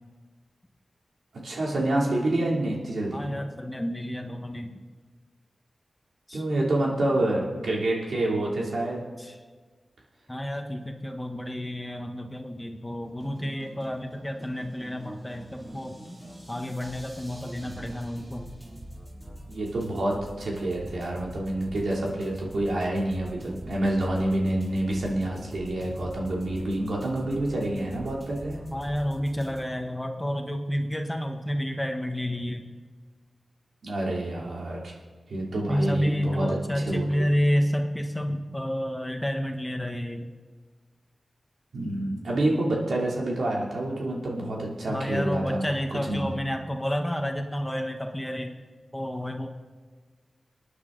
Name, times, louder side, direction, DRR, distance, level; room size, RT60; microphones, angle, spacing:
voice 1, 1.4-3.3 6.3-9.0 17.6-17.9 19.5-28.6 33.8-34.9 35.3-36.5 36.9-37.2 41.7-45.6 46.1-46.3, right 1 dB, 80° right, -2 dB, 2.9 m, -28 dB
voice 2, 3.1-4.8 6.3-6.4 9.2-9.4 10.3-16.0 16.5-18.5 28.7-32.7 35.7-40.3 44.4-44.5 44.9-48.5 48.9-49.5, equal, 10° left, 4 dB, 1.2 m, -30 dB
sound 1, 13.0-29.6, right 1 dB, 25° right, 3.6 m, -44 dB
26.0 x 9.8 x 3.9 m, 1.4 s
wide cardioid pair, 105°, 0 cm